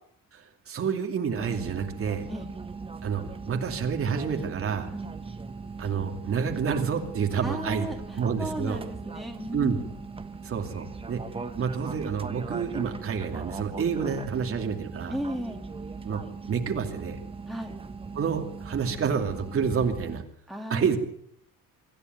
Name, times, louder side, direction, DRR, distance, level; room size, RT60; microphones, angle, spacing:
voice 1, 0.3-2.3 3.0-4.9 5.8-7.9 8.1-8.8 9.5-9.8 10.4-11.2 11.6-15.2 16.0-16.2 16.5-17.2 18.1-20.2 20.7-21.0, right 6 dB, 40° right, 4 dB, 2.7 m, -29 dB
sound 1, 1.3-20.2, right 4 dB, 15° right, 1.2 m, -39 dB
voice 2, 7.4-8.0 8.4-10.0 15.1-15.6 17.5-17.8 20.5-21.0, equal, ahead, 1 dB, 2.9 m, -35 dB
25.0 x 14.0 x 9.4 m, 0.68 s
cardioid pair, 170°, 35 cm